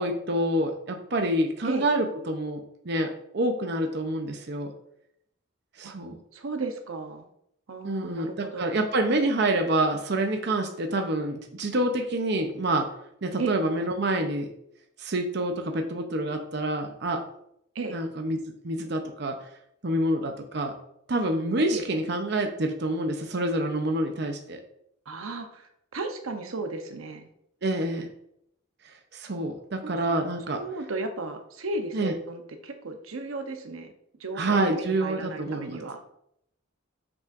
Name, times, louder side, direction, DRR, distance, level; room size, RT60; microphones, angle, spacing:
voice 1, 0.0-4.7 5.8-6.2 7.8-12.9 13.2-14.5 15.0-17.2 17.9-18.4 18.6-19.4 19.8-20.7 21.1-24.6 27.6-28.1 29.1-30.6 31.9-32.1 34.4-35.8, right 1 dB, 55° right, 4 dB, 0.7 m, -27 dB
voice 2, 6.3-7.3 7.7-8.8 13.4-13.5 17.7-18.0 21.7-21.8 25.1-27.3 29.8-30.0 30.5-33.9 34.2-36.0, right 3 dB, 90° right, 6 dB, 0.8 m, -34 dB
7.4 x 6.1 x 2.5 m, 0.74 s
head